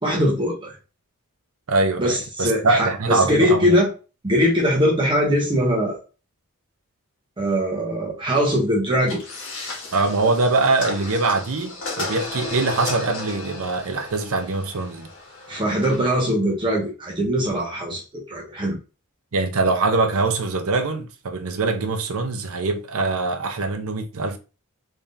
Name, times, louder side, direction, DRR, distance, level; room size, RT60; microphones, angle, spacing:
voice 1, 0.0-0.7 2.0-3.9 4.2-6.0 7.4-9.2 15.5-18.8, equal, 20° right, 0.8 m, -21 dB
voice 2, 1.7-3.8 9.9-15.1 19.3-24.4, right 3 dB, 65° right, 0.7 m, -23 dB
sound 1, 9.0-16.2, left 2 dB, 55° left, 1.3 m, -34 dB
3.5 x 3.4 x 2.6 m
head